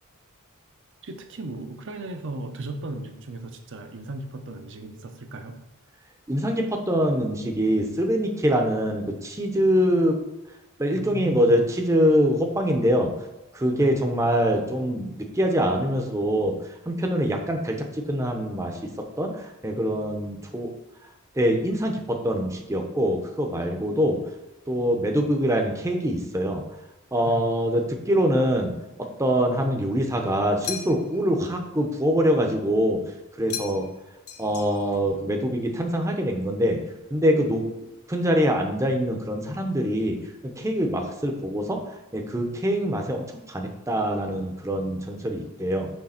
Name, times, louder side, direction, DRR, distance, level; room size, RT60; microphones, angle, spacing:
voice 1, 1.0-5.6 10.9-11.6 13.8-14.0 27.3-27.4, right 2 dB, 60° right, 5 dB, 0.7 m, -36 dB
voice 2, 6.3-10.2 10.8-13.1 13.5-16.6 16.9-20.7 21.4-24.2 24.7-26.6 27.1-28.7 29.0-33.0 33.4-33.9 34.4-36.8 37.1-40.2 40.4-45.9, equal, 15° right, 3 dB, 0.7 m, -24 dB
sound 1, 30.6-31.3 33.5-34.0 34.3-35.0, left 8 dB, 70° left, 0.7 m, -36 dB
6.5 x 3.4 x 5.7 m, 0.99 s
head